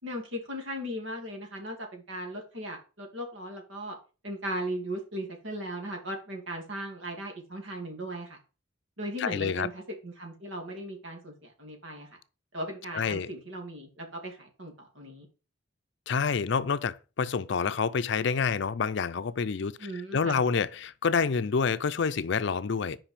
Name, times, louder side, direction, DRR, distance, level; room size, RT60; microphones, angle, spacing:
voice 1, 0.0-4.0 4.2-8.4 9.0-12.1 12.5-15.3 19.8-20.4, right 1 dB, 70° right, 2.5 m, -37 dB
voice 2, 9.2-9.7 12.9-13.3 16.1-19.8 20.1-23.0, left 5 dB, 60° left, 0.5 m, -28 dB
5.8 x 5.2 x 6.7 m
head